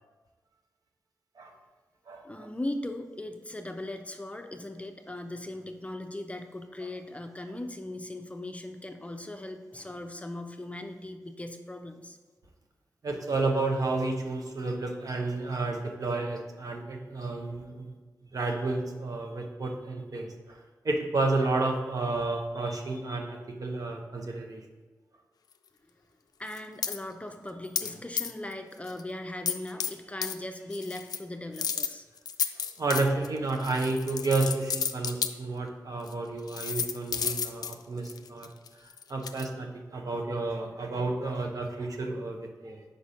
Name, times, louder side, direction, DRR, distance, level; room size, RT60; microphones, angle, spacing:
voice 1, 2.2-12.2 26.4-32.1, left 1 dB, 20° left, 6 dB, 0.6 m, -39 dB
voice 2, 13.0-17.9 18.3-20.3 20.8-24.6 32.8-38.5 39.1-42.8, right 3 dB, 55° right, 2 dB, 0.9 m, -31 dB
sound 1, 26.5-27.0 27.7-27.9 28.2-28.5 28.9-29.0 29.5-29.9 30.2-30.3 30.7-31.2 31.5-35.3 36.1-36.2 36.5-39.5, left 7 dB, 65° left, 0.4 m, -32 dB
5.2 x 4.0 x 5.0 m, 1.3 s
supercardioid pair, 40°, 7 cm